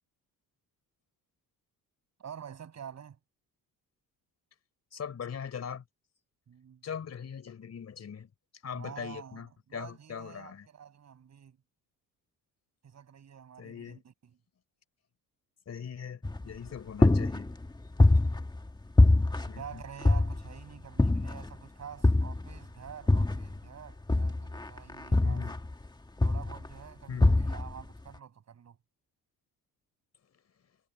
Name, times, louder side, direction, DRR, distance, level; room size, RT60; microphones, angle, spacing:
voice 1, 2.2-3.2 6.5-6.8 8.7-9.4 9.7-11.6 12.8-14.0 19.6-25.5 26.2-28.8, right 8 dB, 50° right, 6.4 m, -47 dB
voice 2, 4.9-5.8 6.8-8.3 8.6-10.7 13.6-14.0 15.7-17.5 19.5-19.8 25.2-25.5 27.1-27.4, left 7 dB, 45° left, 4.0 m, -40 dB
sound 1, 16.2-16.7 17.0-18.7 19.0-20.6 21.0-21.5 22.0-23.6 24.1-25.9 26.2-26.7 27.2-27.8, left 2 dB, 10° left, 1.7 m, -24 dB
cardioid pair, 110°, 35 cm